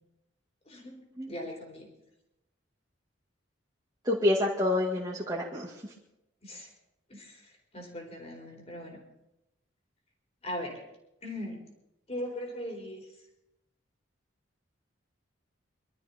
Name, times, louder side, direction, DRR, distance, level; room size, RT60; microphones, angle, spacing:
voice 1, 0.7-1.0 1.3-1.9 6.4-6.7 7.1-9.0 10.4-10.8 11.2-11.6 12.1-13.1, left 1 dB, 30° left, 1 dB, 4.1 m, -39 dB
voice 2, 4.0-5.9, left 1 dB, 20° right, -5 dB, 2.3 m, -28 dB
24.5 x 13.0 x 4.5 m, 0.89 s
head